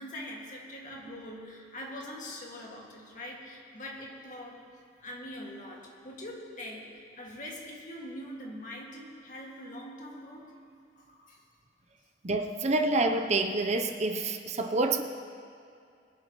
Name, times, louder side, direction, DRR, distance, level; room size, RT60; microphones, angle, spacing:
voice 1, 0.0-4.7 5.0-10.6 11.0-11.4, left 1 dB, 45° left, -2 dB, 2.0 m, -43 dB
voice 2, 12.2-15.0, right 2 dB, 40° right, 5 dB, 0.6 m, -27 dB
23.0 x 11.0 x 3.1 m, 2.4 s
head